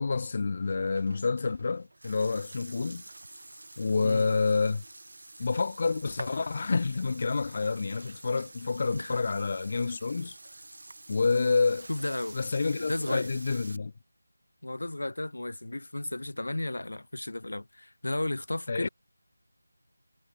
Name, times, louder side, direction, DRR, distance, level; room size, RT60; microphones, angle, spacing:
voice 1, 0.0-3.0 3.8-4.8 5.4-10.4 11.1-11.9 12.3-13.9 18.7-18.9, left 4 dB, 35° left, 0.4 m, -28 dB
Burping eructation, 0.6-13.8, right 2 dB, 70° right, 5.8 m, -47 dB
voice 2, 11.9-12.4 12.7-13.3 14.6-18.9, left 2 dB, 85° left, 0.9 m, -34 dB
figure-of-eight pair, 175°, 0 cm